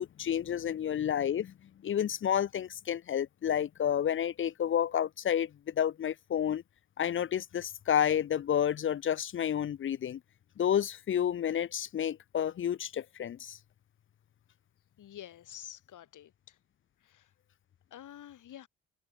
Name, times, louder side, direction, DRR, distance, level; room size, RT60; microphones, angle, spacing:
voice 1, 0.0-1.5 1.8-6.6 7.0-10.2 10.6-13.6, left 9 dB, 35° left, 0.5 m, -30 dB
voice 2, 15.0-16.6 17.0-17.3 17.9-18.7, left 11 dB, 55° left, 1.5 m, -49 dB
hypercardioid pair, 45°, 37 cm